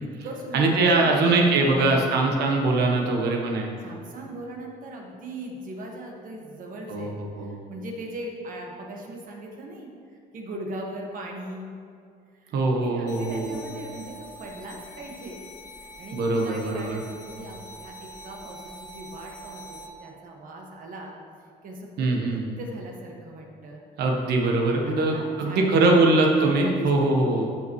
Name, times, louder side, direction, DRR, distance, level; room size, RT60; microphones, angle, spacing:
voice 1, 0.0-2.2 3.8-11.8 12.4-15.4 16.0-21.2 21.6-23.8 24.8-26.9 27.3-27.4, right 1 dB, 55° right, 0 dB, 1.7 m, -39 dB
voice 2, 0.5-3.7 6.9-7.6 12.5-13.6 16.1-17.0 22.0-22.5 24.0-27.5, right 2 dB, 75° right, 1 dB, 1.3 m, -22 dB
sound 1, 13.1-19.9, right 1 dB, 45° left, 1.2 m, -44 dB
14.0 x 5.4 x 3.2 m, 2.3 s
cardioid pair, 110°, 17 cm